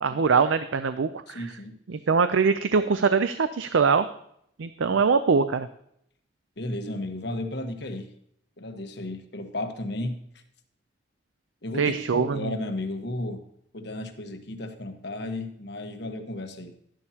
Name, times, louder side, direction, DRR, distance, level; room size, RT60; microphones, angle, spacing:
voice 1, 0.0-1.5 1.9-4.1 4.6-5.7 11.8-12.5, right 5 dB, 90° right, 11 dB, 0.5 m, -23 dB
voice 2, 1.3-1.7 4.9-5.0 6.6-8.1 8.6-10.2 11.6-13.4 13.7-16.7, left 1 dB, 60° left, 6 dB, 1.3 m, -34 dB
11.5 x 11.0 x 2.9 m, 0.70 s
head